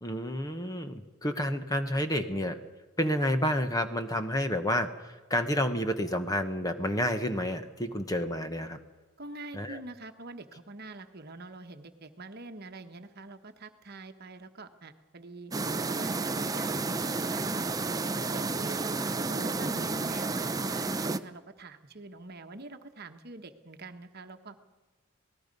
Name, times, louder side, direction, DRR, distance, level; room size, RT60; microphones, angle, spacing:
voice 1, 0.0-2.6 3.0-4.9 5.3-8.8 9.5-9.8, equal, 15° left, 7 dB, 1.1 m, -29 dB
voice 2, 9.2-15.5 15.9-17.7 18.1-19.0 19.3-24.6, right 2 dB, 45° right, 7 dB, 1.2 m, -45 dB
sound 1, 15.5-21.2, right 3 dB, 15° right, 0.6 m, -31 dB
26.5 x 18.5 x 5.4 m, 1.3 s
head